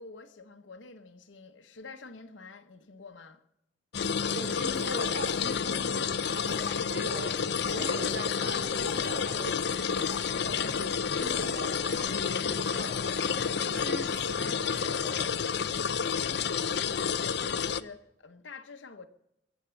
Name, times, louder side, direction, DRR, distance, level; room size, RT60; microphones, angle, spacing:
voice 1, 0.0-3.4 15.6-19.1, left 3 dB, 80° left, 1.1 m, -47 dB
sound 1, 3.9-17.8, left 6 dB, 60° left, 0.6 m, -30 dB
voice 2, 4.3-13.4 13.6-15.2, right 1 dB, 60° right, 4.3 m, -41 dB
Cough, 4.7-5.0 5.3-5.5 6.4-6.8 7.5-8.0 8.7-9.1 9.8-10.3 11.1-11.6 12.1-12.3 13.3-14.3 14.7-15.3, right 1 dB, 30° right, 7.0 m, -49 dB
23.5 x 8.3 x 7.1 m
head